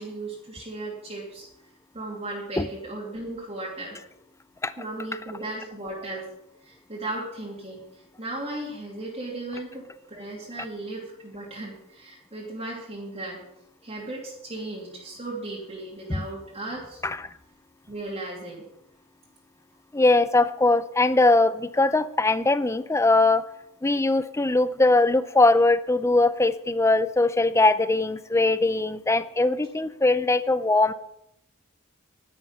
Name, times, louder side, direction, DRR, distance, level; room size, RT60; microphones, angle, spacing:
voice 1, 0.0-1.5 1.9-4.0 4.8-6.3 6.6-9.8 10.1-13.4 13.8-17.0 17.9-18.6, right 2 dB, 30° right, -5 dB, 2.9 m, -36 dB
voice 2, 19.9-23.4 23.8-30.9, left 2 dB, 15° left, 14 dB, 0.5 m, -21 dB
11.5 x 11.0 x 5.8 m, 0.81 s
head